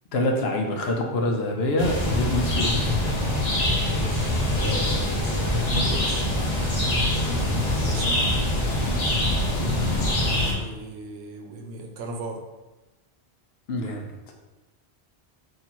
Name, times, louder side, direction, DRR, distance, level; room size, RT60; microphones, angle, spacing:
voice 1, 0.1-3.2 7.3-7.6 9.7-10.1 13.7-14.1, left 1 dB, 70° left, 2 dB, 0.8 m, -26 dB
sound 1, 1.8-10.5, left 1 dB, 40° left, 0.8 m, -24 dB
voice 2, 3.8-6.3 7.1-8.4 9.5-12.5, right 3 dB, 75° right, 3 dB, 0.8 m, -36 dB
4.1 x 2.7 x 2.9 m, 1.1 s
omnidirectional pair, 1.1 m